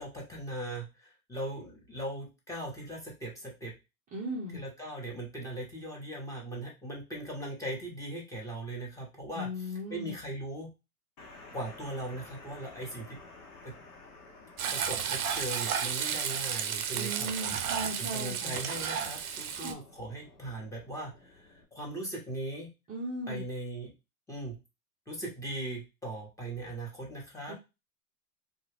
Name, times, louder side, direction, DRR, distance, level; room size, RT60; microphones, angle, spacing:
voice 1, 0.0-3.7 4.5-10.7 11.5-13.2 13.6-13.7 14.7-22.7 23.3-23.9 24.3-24.6 25.1-27.5, right 1 dB, 5° left, -1 dB, 0.9 m, -39 dB
voice 2, 4.1-4.6 9.3-10.1 16.9-18.5 19.5-19.8 22.9-23.4 27.5-27.6, equal, 20° right, -4 dB, 0.6 m, -37 dB
sound 1, 11.2-21.6, left 3 dB, 65° left, 1.2 m, -53 dB
Frying (food), 14.6-19.7, right 7 dB, 65° right, 0.7 m, -33 dB
2.7 x 2.3 x 3.3 m, 0.26 s
hypercardioid pair, 120°, 46 cm